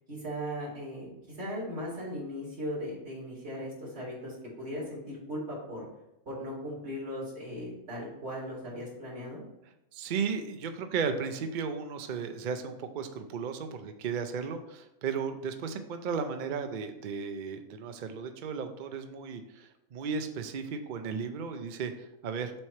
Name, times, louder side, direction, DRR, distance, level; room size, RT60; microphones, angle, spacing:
voice 1, 0.1-5.8 6.2-9.4, equal, 50° right, -6 dB, 2.8 m, -38 dB
voice 2, 9.9-22.5, right 6 dB, 75° right, 7 dB, 0.4 m, -35 dB
7.5 x 3.2 x 4.3 m, 0.88 s
omnidirectional pair, 1.5 m